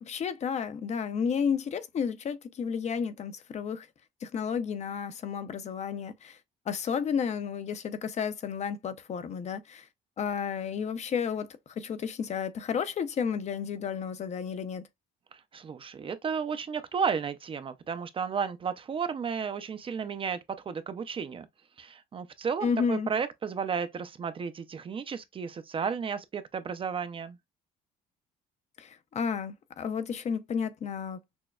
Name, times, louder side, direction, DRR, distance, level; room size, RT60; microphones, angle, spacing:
voice 1, 0.0-3.9 4.2-6.4 6.7-9.9 10.2-14.9 22.6-23.1 28.8-31.4, left 6 dB, 40° left, 0.5 m, -32 dB
voice 2, 15.3-21.5 21.8-27.4, right 6 dB, 30° right, 0.5 m, -33 dB
6.1 x 2.2 x 2.3 m
cardioid pair, 110°, 17 cm